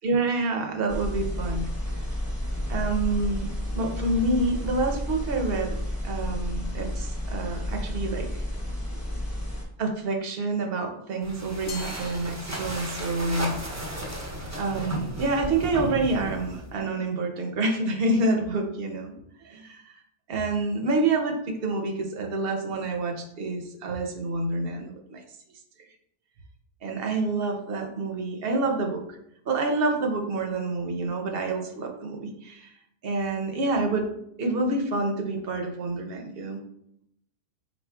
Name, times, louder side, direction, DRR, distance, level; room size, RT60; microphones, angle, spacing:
voice 1, 0.0-1.7 2.7-3.5 3.7-5.8 6.0-8.4 9.8-13.6 14.6-20.0 20.3-25.2 26.8-29.2 29.5-32.7 33.0-34.1 34.4-36.6, right 2 dB, 70° right, 4 dB, 0.8 m, -28 dB
sound 1, 0.9-9.6, left 1 dB, 15° left, 0.9 m, -31 dB
sound 2, 11.2-16.8, right 1 dB, 20° right, 0.5 m, -34 dB
Glass, 11.7-13.1, left 5 dB, 50° left, 0.7 m, -43 dB
4.2 x 4.1 x 2.2 m, 0.75 s
omnidirectional pair, 1.1 m